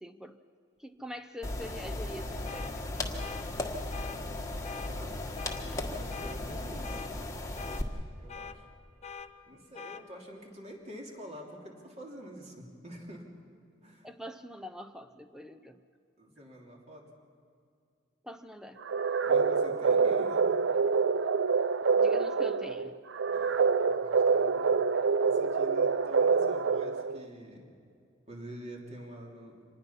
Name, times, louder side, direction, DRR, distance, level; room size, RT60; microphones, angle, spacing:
voice 1, 0.0-0.4 0.8-3.2 14.0-15.8 18.2-18.8 22.0-23.0 24.9-25.0, equal, 5° right, 9 dB, 0.6 m, -44 dB
sound 1, 1.4-7.8, left 2 dB, 15° left, 1.5 m, -36 dB
sound 2, 2.5-2.7 3.2-3.5 3.9-4.2 4.6-4.9 5.4-5.6 6.1-6.4 6.8-7.1 7.6-7.8 8.3-8.6 9.0-9.3 9.7-10.0, left 6 dB, 35° left, 0.8 m, -43 dB
voice 2, 4.8-5.2 5.7-7.0 8.2-8.7 9.5-13.3 13.8-14.1 16.2-17.1 19.2-20.5 23.3-24.9 25.2-27.7 28.3-29.6, equal, 35° right, 0 dB, 3.1 m, -47 dB
sound 3, 18.8-27.3, right 5 dB, 70° right, 0.5 m, -26 dB
25.5 x 20.0 x 5.8 m, 2.4 s
head